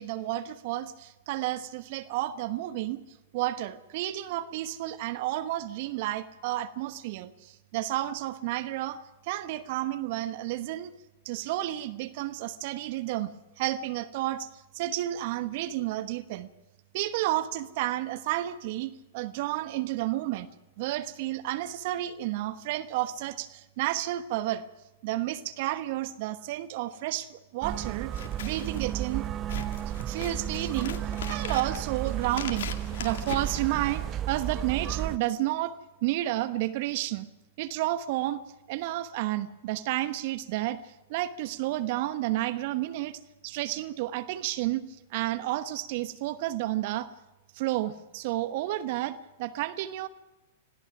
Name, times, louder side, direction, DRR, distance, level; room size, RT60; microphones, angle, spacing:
voice 1, 0.0-3.0 3.3-10.9 11.2-14.5 14.7-16.5 16.9-20.5 20.8-24.6 25.0-28.1 28.4-29.3 30.1-32.7 33.0-37.3 37.6-38.4 38.7-44.8 45.1-47.1 47.5-50.1, right 15 dB, 55° right, 12 dB, 1.1 m, -31 dB
sound 1, 27.6-35.2, right 11 dB, 30° right, 0.7 m, -33 dB
Scissors, 28.0-34.3, left 7 dB, 65° left, 2.2 m, -41 dB
26.0 x 17.0 x 6.0 m, 1.0 s
hypercardioid pair, 105°, 0 cm